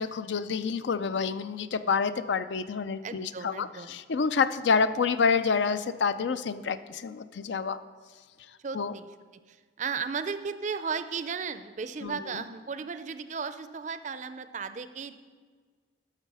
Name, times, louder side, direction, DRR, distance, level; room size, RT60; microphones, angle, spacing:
voice 1, 0.0-7.8 8.7-9.0 12.0-12.2, left 5 dB, 75° left, 13 dB, 0.4 m, -28 dB
voice 2, 3.0-4.0 8.6-9.1 9.5-15.1, right 5 dB, 40° right, 12 dB, 0.4 m, -35 dB
12.5 x 6.3 x 5.4 m, 1.5 s
head